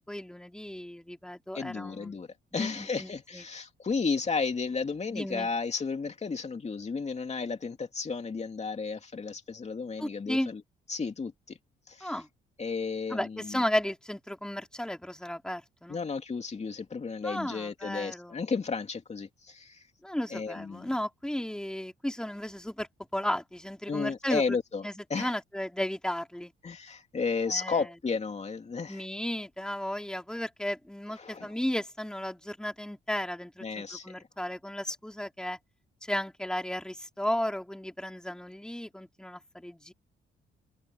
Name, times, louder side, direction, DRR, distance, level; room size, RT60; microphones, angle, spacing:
voice 1, 0.1-2.2 2.5-3.4 5.1-5.5 10.0-10.5 12.0-12.3 13.1-16.0 17.2-18.4 20.0-22.9 23.1-24.6 24.8-26.5 27.5-27.8 28.9-35.6 36.1-39.9, left 1 dB, 5° left, 3.4 m, -34 dB
voice 2, 1.5-2.3 2.5-10.6 10.9-11.6 11.9-12.1 12.6-13.6 15.9-19.8 20.3-20.9 23.9-24.8 25.1-25.3 26.6-29.0 31.2-31.5 33.6-34.2, left 4 dB, 35° left, 2.8 m, -33 dB
cardioid pair, 90°, 20 cm